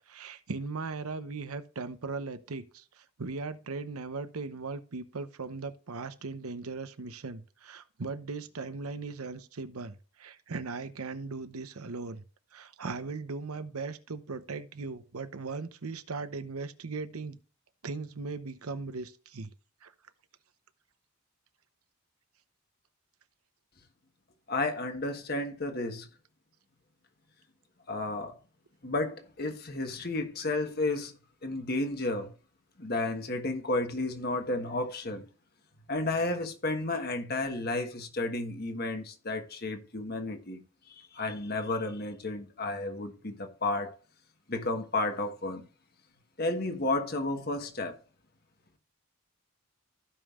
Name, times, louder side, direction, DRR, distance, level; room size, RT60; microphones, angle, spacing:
voice 1, 0.1-12.2 12.5-17.4 17.8-19.5 19.8-19.9, right 4 dB, 90° right, 0.9 m, -38 dB
voice 2, 24.5-26.1 27.9-28.3 28.8-31.1 31.4-32.3 32.8-35.2 35.9-40.6 40.9-44.0 44.5-45.6 46.4-48.0, left 2 dB, 45° left, 1.4 m, -32 dB
15.5 x 5.4 x 2.5 m
head